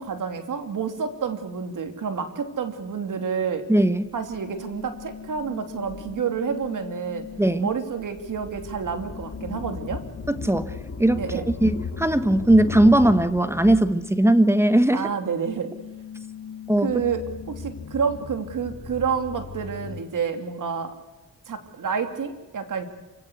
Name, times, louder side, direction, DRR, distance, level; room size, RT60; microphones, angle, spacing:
voice 1, 0.0-3.7 4.1-7.3 7.6-10.0 11.2-11.5 14.9-15.7 16.8-20.9 21.5-22.9, right 6 dB, 65° right, 7 dB, 3.0 m, -29 dB
voice 2, 3.7-4.1 7.4-7.7 10.3-10.7 11.0-15.1 16.7-16.9, right 1 dB, 10° right, 11 dB, 1.4 m, -19 dB
sound 1, 3.8-14.5 14.8-20.0, left 5 dB, 45° left, 3.7 m, -37 dB
27.5 x 17.0 x 8.2 m, 1.1 s
cardioid pair, 80°, 33 cm